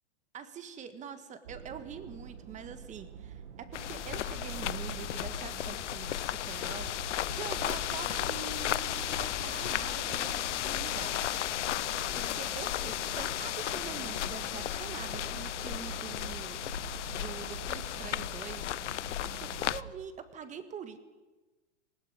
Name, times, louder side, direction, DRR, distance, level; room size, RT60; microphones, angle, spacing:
voice 1, 0.3-11.8 12.1-16.6 17.1-18.7 19.2-21.0, right 7 dB, 20° right, 10 dB, 1.6 m, -45 dB
sound 1, 1.4-19.9, right 7 dB, 75° right, 1.8 m, -46 dB
sound 2, 3.7-19.8, left 13 dB, 85° left, 0.7 m, -34 dB
19.0 x 16.5 x 9.6 m, 1.2 s
hypercardioid pair, 140°, 34 cm